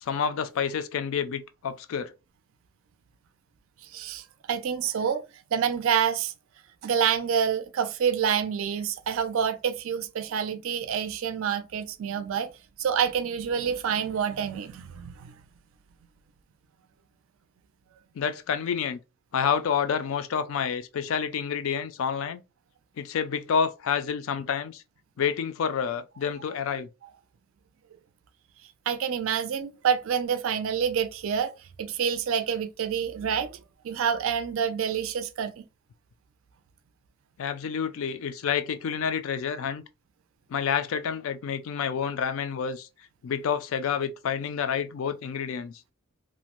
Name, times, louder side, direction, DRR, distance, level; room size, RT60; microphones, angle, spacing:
voice 1, 0.0-2.1 18.2-19.0 19.3-22.4 23.0-24.8 25.2-26.9 37.4-39.8 40.5-42.9 43.2-45.7, left 7 dB, 65° left, 0.3 m, -28 dB
voice 2, 3.9-5.2 5.5-6.3 6.8-12.5 12.8-15.3 28.9-31.5 31.8-33.6 33.8-35.6, right 7 dB, 65° right, 0.4 m, -27 dB
2.5 x 2.0 x 2.9 m
head